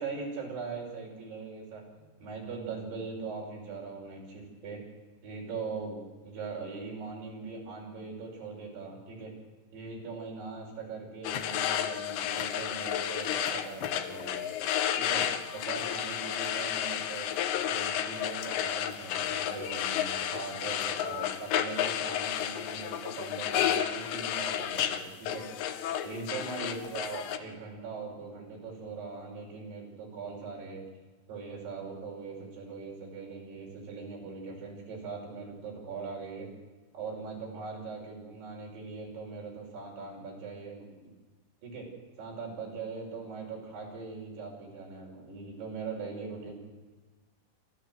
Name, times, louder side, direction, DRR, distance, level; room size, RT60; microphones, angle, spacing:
voice 1, 0.0-4.8 5.2-6.0 6.2-9.3 9.7-14.5 15.0-15.3 15.5-17.3 17.6-25.4 26.0-30.8 31.3-36.5 36.9-41.1 41.6-41.9 42.2-46.5, right 4 dB, 55° right, -1 dB, 7.4 m, -41 dB
sound 1, 11.2-27.4, left 10 dB, 75° left, 3.0 m, -32 dB
26.5 x 14.0 x 7.9 m, 1.3 s
omnidirectional pair, 5.8 m